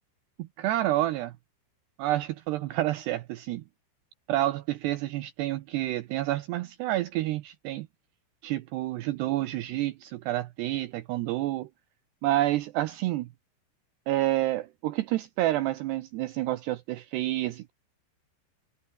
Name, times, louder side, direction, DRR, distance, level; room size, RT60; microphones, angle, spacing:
voice 1, 0.4-1.3 2.0-3.6 4.3-7.9 8.4-11.7 12.2-13.3 14.1-17.7, right 15 dB, 80° right, 2.5 m, -29 dB
omnidirectional pair, 5.7 m